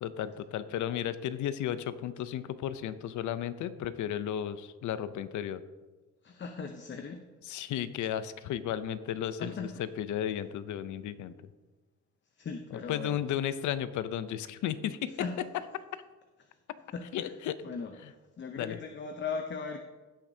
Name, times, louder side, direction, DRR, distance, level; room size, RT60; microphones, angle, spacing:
voice 1, 0.0-5.6 7.5-11.3 12.9-15.1 17.1-17.6 18.6-18.8, left 10 dB, 75° left, 13 dB, 0.6 m, -34 dB
voice 2, 6.2-7.2 7.5-7.6 9.4-9.7 12.4-13.2 15.2-15.4 16.4-16.6 16.9-17.3 17.6-19.8, left 5 dB, 40° left, 5 dB, 0.7 m, -39 dB
16.5 x 5.9 x 2.8 m, 1.3 s
cardioid pair, 90°, 30 cm